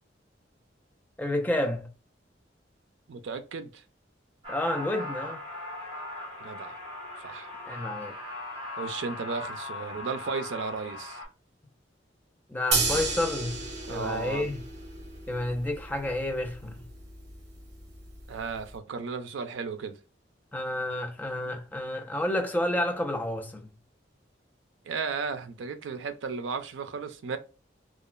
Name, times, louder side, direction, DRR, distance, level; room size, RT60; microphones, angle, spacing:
voice 1, 1.2-1.9 4.5-5.4 7.7-8.1 12.5-13.6 13.9-14.6 15.3-16.8 20.5-23.7, left 1 dB, 10° left, 0.4 m, -30 dB
voice 2, 3.1-3.8 6.4-6.8 7.2-7.5 8.8-11.2 13.9-14.5 18.3-20.0 24.9-27.4, right 5 dB, 85° right, 0.4 m, -34 dB
sound 1, 4.4-11.2, left 2 dB, 30° right, 1.2 m, -39 dB
sound 2, 12.7-18.7, right 3 dB, 65° right, 0.8 m, -34 dB
2.9 x 2.3 x 2.2 m
head